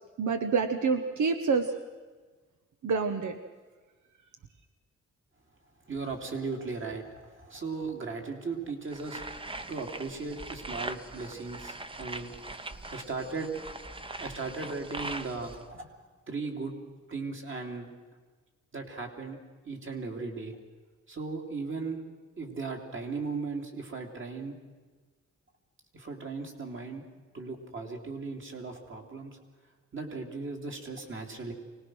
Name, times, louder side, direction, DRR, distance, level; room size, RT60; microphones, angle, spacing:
voice 1, 0.2-1.7 2.8-3.4, right 5 dB, 80° right, 7 dB, 1.2 m, -27 dB
voice 2, 5.9-9.2 9.7-13.5 14.2-15.9 16.3-16.7 17.1-17.9 18.7-19.4 19.6-20.5 21.1-22.0 22.4-24.6 25.9-27.0 27.3-29.4 29.9-31.5, right 4 dB, 45° right, 2 dB, 3.0 m, -37 dB
sound 1, 8.9-15.6, right 2 dB, 20° right, 0.9 m, -41 dB
24.5 x 19.5 x 6.3 m, 1.3 s
wide cardioid pair, 135°, 29 cm